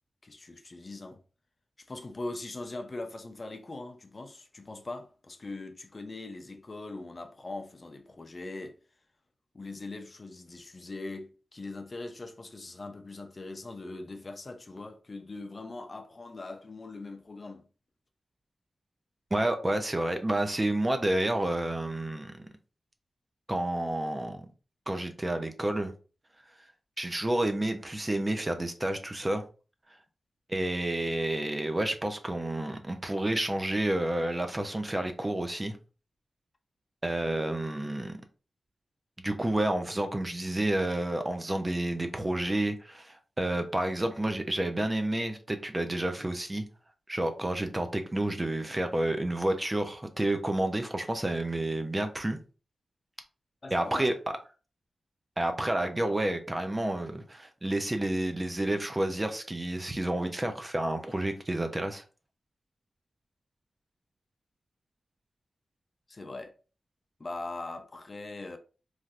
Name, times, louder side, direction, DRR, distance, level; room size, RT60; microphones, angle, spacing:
voice 1, 0.2-1.2 1.8-8.8 9.5-17.7 53.6-54.1 66.1-66.5 67.2-68.6, left 2 dB, 40° left, 0.5 m, -41 dB
voice 2, 19.3-22.5 23.5-24.5 24.9-25.9 27.0-29.4 30.5-35.8 37.0-38.2 39.2-46.6 47.1-52.4 53.7-54.1 55.4-62.0, right 1 dB, 25° right, 0.5 m, -30 dB
3.2 x 2.6 x 2.4 m
wide cardioid pair, 75°, 0 cm